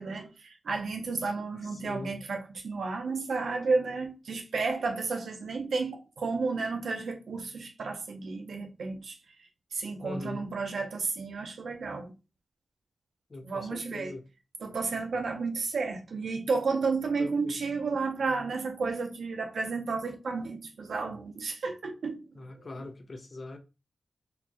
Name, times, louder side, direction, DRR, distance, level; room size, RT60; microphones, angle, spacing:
voice 1, 0.0-9.2 9.7-12.1 13.4-14.1 14.6-22.2 22.5-22.7, right 4 dB, 75° right, 0.8 m, -32 dB
voice 2, 1.6-2.2 10.0-10.5 13.3-14.2 17.2-17.6 22.4-23.6, left 2 dB, 35° left, 0.5 m, -41 dB
4.1 x 2.7 x 2.9 m
wide cardioid pair, 165°, 0 cm